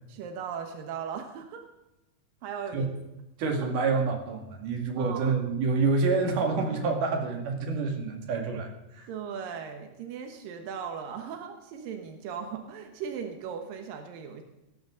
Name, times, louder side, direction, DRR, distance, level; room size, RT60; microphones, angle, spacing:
voice 1, 0.1-1.6 2.4-2.9 3.6-3.7 5.0-5.4 9.1-14.4, right 7 dB, 85° right, 5 dB, 3.0 m, -38 dB
voice 2, 3.4-8.7 9.0-9.1, right 4 dB, 70° right, 4 dB, 3.6 m, -27 dB
18.0 x 14.5 x 3.8 m, 0.95 s
omnidirectional pair, 3.9 m